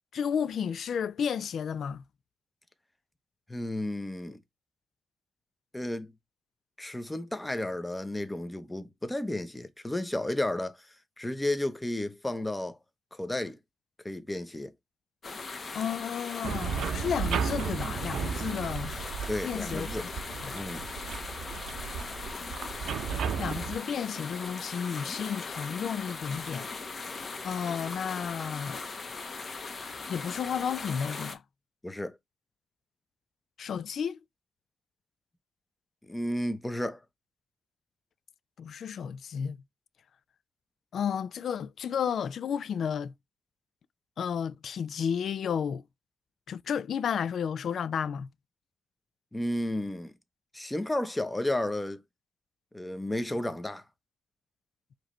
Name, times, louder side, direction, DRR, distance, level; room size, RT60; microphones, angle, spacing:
voice 1, 0.1-2.0 15.7-19.0 19.4-20.1 20.4-20.5 23.4-26.7 27.4-28.8 30.1-31.4 33.6-34.2 38.6-39.6 40.9-43.1 44.2-45.8 46.5-48.3, left 7 dB, 70° left, 0.3 m, -32 dB
voice 2, 3.5-4.4 5.7-6.1 6.8-10.9 11.2-12.8 13.1-13.6 14.0-14.7 19.3-20.0 20.5-20.9 31.8-32.2 36.1-37.0 49.3-50.1 50.5-52.0 52.7-53.8, left 1 dB, 15° left, 0.8 m, -32 dB
sound 1, 15.2-31.3, left 4 dB, 45° left, 1.1 m, -39 dB
sound 2, 16.4-23.8, right 7 dB, 85° right, 0.6 m, -34 dB
4.7 x 3.1 x 3.1 m
cardioid pair, 70°, 0 cm